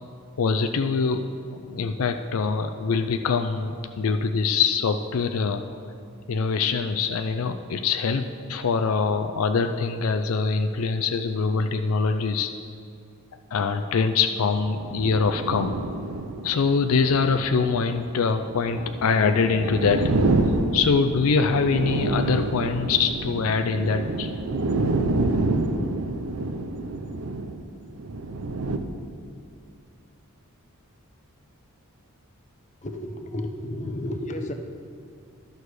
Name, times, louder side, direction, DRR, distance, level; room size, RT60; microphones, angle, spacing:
voice 1, 0.4-1.3 1.7-5.6 6.3-12.5 13.5-15.8 16.4-20.2 20.7-24.3, left 5 dB, 70° left, 7 dB, 0.4 m, -24 dB
sound 1, 14.5-28.8, right 2 dB, 80° right, 0.6 m, -28 dB
voice 2, 32.8-34.5, left 1 dB, 35° left, 5 dB, 0.7 m, -32 dB
11.5 x 6.4 x 4.8 m, 2.4 s
head